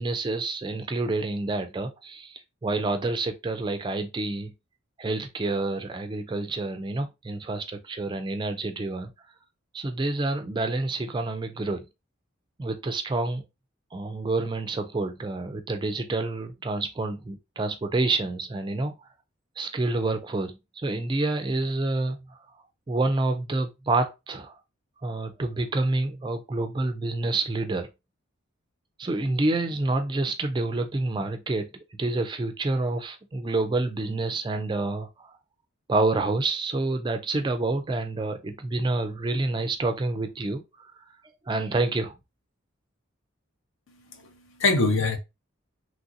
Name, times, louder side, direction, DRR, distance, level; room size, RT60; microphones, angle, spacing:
voice 1, 0.0-4.5 5.0-9.1 9.7-11.9 12.6-13.4 13.9-19.1 19.6-22.4 22.9-24.6 25.0-27.9 29.0-31.7 32.0-35.3 35.9-42.1, right 2 dB, 20° right, 0.3 m, -28 dB
voice 2, 43.9-45.2, left 3 dB, 65° left, 0.7 m, -25 dB
3.1 x 2.5 x 2.6 m
head